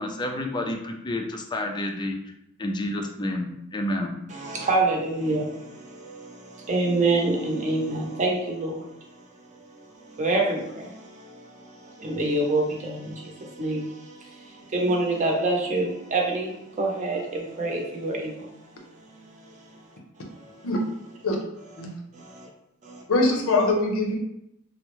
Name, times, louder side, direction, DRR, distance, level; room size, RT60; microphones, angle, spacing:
voice 1, 0.0-2.2 2.6-4.1, left 1 dB, 20° left, 4 dB, 0.3 m, -29 dB
voice 2, 4.3-8.8 10.2-18.5 20.3-20.6 22.1-22.5 22.8-23.0, right 2 dB, 35° right, -1 dB, 0.7 m, -27 dB
voice 3, 23.1-24.2, left 2 dB, 70° left, 2 dB, 0.6 m, -22 dB
3.5 x 2.0 x 3.0 m, 0.81 s
head